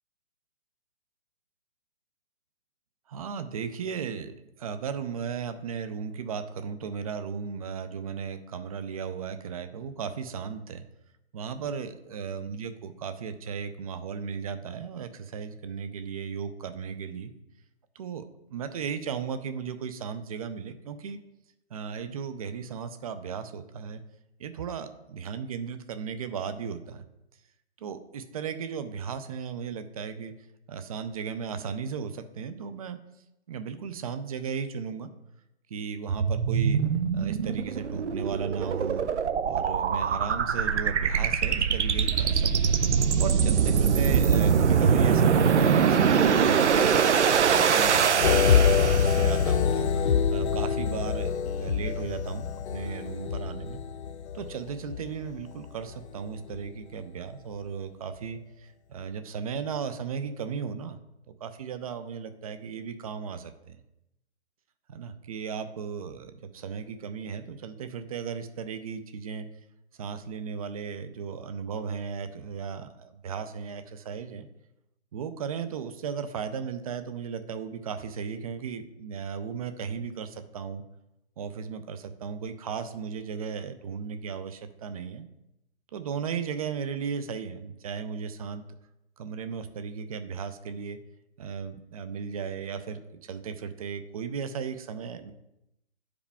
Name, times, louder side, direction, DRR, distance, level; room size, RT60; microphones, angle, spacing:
voice 1, 3.1-10.8 11.3-17.3 18.0-21.2 21.7-24.0 24.4-27.0 27.8-30.3 30.7-33.0 33.5-35.1 35.7-36.8 37.1-39.1 39.4-42.7 43.2-47.0 47.7-53.8 54.3-61.0 61.4-63.8 64.9-69.5 70.0-74.5 75.1-80.8 81.4-85.3 85.9-88.6 89.2-91.0 91.4-95.3, right 6 dB, 35° right, 10 dB, 0.5 m, -36 dB
sound 1, 36.1-49.5, right 7 dB, 90° right, 0.7 m, -23 dB
sound 2, 42.1-51.7, left 3 dB, 55° left, 1.3 m, -44 dB
sound 3, 48.2-56.1 56.5-56.7, left 7 dB, 70° left, 0.6 m, -25 dB
10.0 x 4.9 x 3.4 m, 0.89 s
hypercardioid pair, 150°, 34 cm